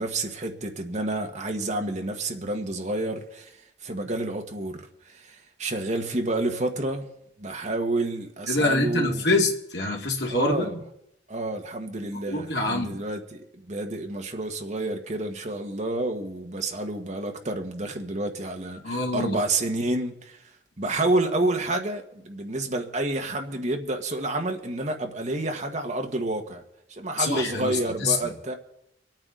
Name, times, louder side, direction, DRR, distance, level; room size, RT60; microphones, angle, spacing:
voice 1, 0.0-3.5 3.8-7.1 7.4-9.2 10.3-10.8 11.3-20.4 20.8-26.6 26.9-28.5, right 2 dB, 45° right, 1.5 m, -29 dB
voice 2, 8.5-10.7 12.3-13.0 18.8-19.4 27.2-28.3, left 2 dB, 75° left, 2.2 m, -25 dB
25.0 x 9.0 x 3.9 m
head